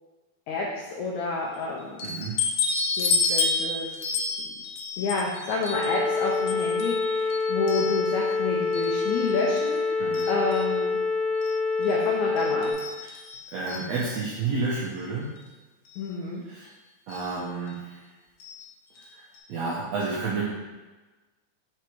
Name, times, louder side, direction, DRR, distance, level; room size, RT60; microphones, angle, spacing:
voice 1, 0.9-2.1 3.0-3.9 5.0-11.0 11.8-12.8 16.0-16.4, left 3 dB, 90° left, -2 dB, 1.6 m, -29 dB
sound 1, 2.0-8.3 8.7-9.8 10.1-10.7 11.4-11.5 11.8-11.9 12.4-14.4 15.4-15.5 15.9-16.0 17.1-17.3 18.4-18.6 19.0-19.1 19.3-19.4, left 4 dB, 75° left, 1.7 m, -31 dB
voice 2, 2.0-2.4 10.0-10.3 13.0-13.1 13.5-15.4 16.5-16.7 17.1-18.0 19.1-20.4, right 4 dB, 85° right, -5 dB, 1.5 m, -31 dB
sound 2, 5.7-12.7, left 4 dB, 50° left, 2.2 m, -26 dB
5.1 x 4.6 x 4.5 m, 1.2 s
omnidirectional pair, 4.3 m